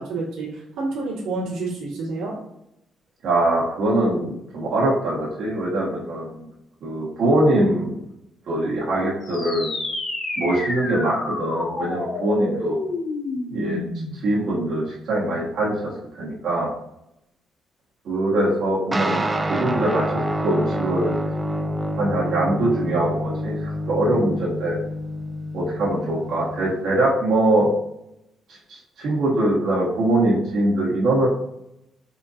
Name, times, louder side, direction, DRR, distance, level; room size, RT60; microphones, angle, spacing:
voice 1, 0.0-2.3, right 3 dB, 90° right, -4 dB, 1.5 m, -29 dB
voice 2, 3.2-6.4 6.8-8.0 8.5-9.7 10.4-12.8 13.5-13.8 14.2-16.7 18.0-21.1 22.0-24.8 25.5-27.7 28.5-28.6 29.0-31.3, right 1 dB, 65° right, -6 dB, 1.2 m, -22 dB
sound 1, 9.2-14.3, left 2 dB, 65° left, 1.1 m, -29 dB
sound 2, 18.9-26.7, equal, 20° right, 0.4 m, -27 dB
4.3 x 4.0 x 2.5 m, 0.81 s
cardioid pair, 90°, 0 cm